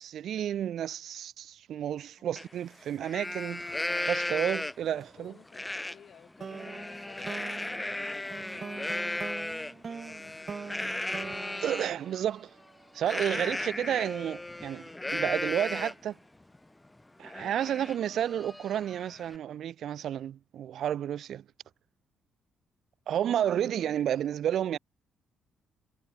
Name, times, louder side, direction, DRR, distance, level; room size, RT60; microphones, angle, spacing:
voice 1, 0.0-3.6 4.0-5.4 11.6-12.5 12.9-16.2 17.2-21.4 23.1-24.8, right 10 dB, 70° right, 0.8 m, -31 dB
voice 2, 1.9-2.3 4.9-10.7 10.9-11.6, left 9 dB, 60° left, 3.5 m, -56 dB
Livestock farm animals working animals, 2.4-2.5 2.9-5.0 5.5-6.0 6.4-11.9 13.0-16.1 16.5-16.6 17.0-19.4, left 1 dB, 10° left, 0.6 m, -35 dB
sound 1, 6.4-12.8, right 5 dB, 40° right, 3.3 m, -43 dB
cardioid pair, 90°, 0 cm